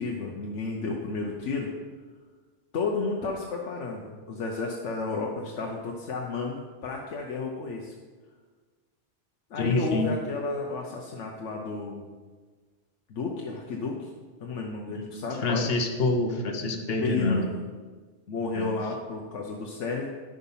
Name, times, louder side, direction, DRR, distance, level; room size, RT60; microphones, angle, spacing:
voice 1, 0.0-1.7 2.7-7.9 9.5-12.0 13.1-14.1 14.4-15.7 17.0-17.6 18.3-20.1, left 3 dB, 90° left, 0 dB, 1.2 m, -32 dB
voice 2, 9.6-10.1 14.9-17.4 18.6-18.7, left 2 dB, 60° left, 4 dB, 1.2 m, -27 dB
9.9 x 5.1 x 5.6 m, 1.5 s
omnidirectional pair, 1.2 m